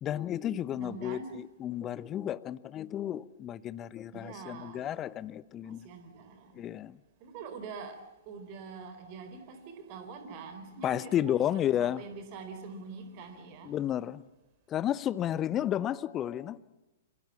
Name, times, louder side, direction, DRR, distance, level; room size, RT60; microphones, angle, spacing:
voice 1, 0.0-1.2 1.6-5.9 6.5-7.0 10.8-12.0 13.7-14.2 14.7-16.7, left 11 dB, 25° left, 0.9 m, -32 dB
voice 2, 0.7-1.4 4.1-4.9 5.6-6.6 7.2-13.8, right 4 dB, 35° right, 4.1 m, -45 dB
27.5 x 25.5 x 7.3 m
figure-of-eight pair, 110°, 0 cm